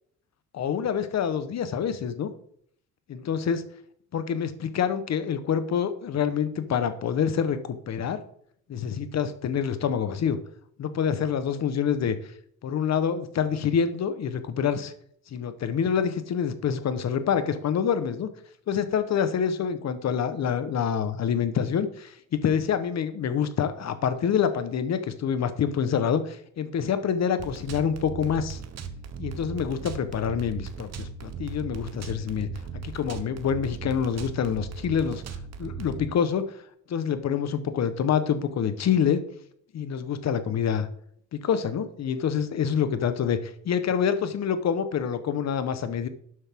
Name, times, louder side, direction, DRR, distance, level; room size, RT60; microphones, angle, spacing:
voice 1, 0.5-2.3 3.1-3.6 4.1-8.2 8.7-10.4 10.8-12.1 12.6-14.9 15.3-18.3 18.7-28.6 29.2-32.5 32.8-35.2 35.6-36.6 36.9-39.2 39.7-40.9 41.3-46.1, left 7 dB, 60° left, 11 dB, 1.2 m, -26 dB
sound 1, 27.4-36.1, right 6 dB, 60° right, 1.2 m, -38 dB
12.0 x 8.0 x 3.7 m, 0.64 s
cardioid pair, 90°, 30 cm